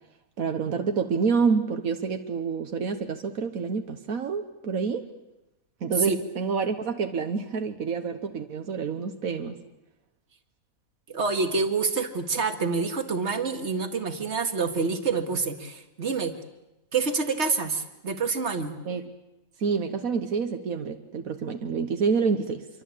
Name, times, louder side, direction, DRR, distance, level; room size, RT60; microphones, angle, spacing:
voice 1, 0.4-5.1 5.8-9.6 18.8-19.1 19.6-22.7, right 5 dB, 80° right, 6 dB, 1.6 m, -28 dB
voice 2, 11.1-16.3 16.9-18.8, right 4 dB, 55° right, 6 dB, 2.2 m, -27 dB
27.0 x 23.5 x 8.5 m, 0.97 s
omnidirectional pair, 1.5 m